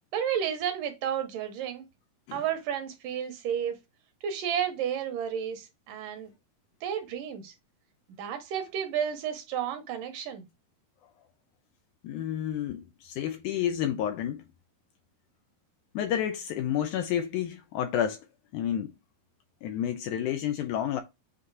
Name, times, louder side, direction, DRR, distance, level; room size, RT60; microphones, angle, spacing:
voice 1, 0.1-1.8 2.3-3.8 4.2-6.3 6.8-7.5 8.2-10.5, right 8 dB, 75° right, 2.6 m, -32 dB
voice 2, 12.0-14.5 15.9-18.2 18.5-18.9 19.6-21.0, left 10 dB, 80° left, 1.9 m, -30 dB
7.7 x 2.8 x 4.8 m
omnidirectional pair, 3.9 m